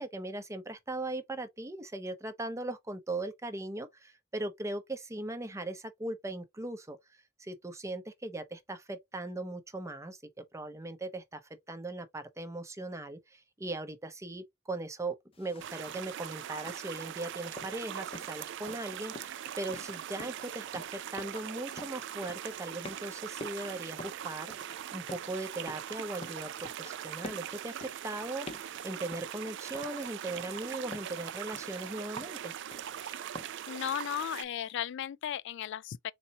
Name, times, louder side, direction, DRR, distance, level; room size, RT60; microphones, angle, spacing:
voice 1, 0.0-7.0 7.4-11.4 11.7-24.5 24.9-28.5 28.8-32.5, right 2 dB, 15° right, 0.6 m, -39 dB
sound 1, 15.3-33.7, left 1 dB, 30° left, 0.6 m, -50 dB
sound 2, 15.6-34.4, right 10 dB, 60° right, 0.4 m, -41 dB
voice 2, 33.7-36.1, left 10 dB, 60° left, 0.3 m, -36 dB
4.1 x 2.7 x 2.8 m
head